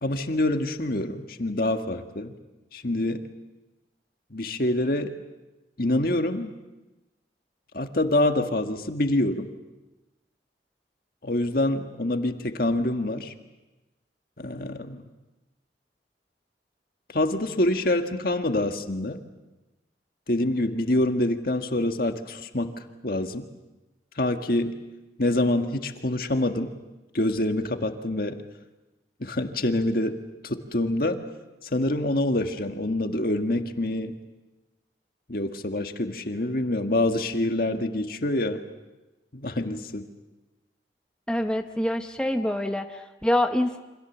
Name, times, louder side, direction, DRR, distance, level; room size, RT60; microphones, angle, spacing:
voice 1, 0.0-2.3 2.7-3.2 4.3-5.1 5.8-6.5 7.7-9.5 11.2-13.3 14.4-15.0 17.1-19.2 20.3-23.5 24.2-24.8 25.2-26.7 27.1-28.4 29.2-31.2 31.6-34.2 35.3-38.6 39.3-40.1, left 1 dB, 55° left, 6 dB, 1.8 m, -26 dB
voice 2, 41.3-43.8, left 1 dB, 5° left, 5 dB, 0.9 m, -26 dB
28.5 x 25.5 x 7.3 m, 1.1 s
head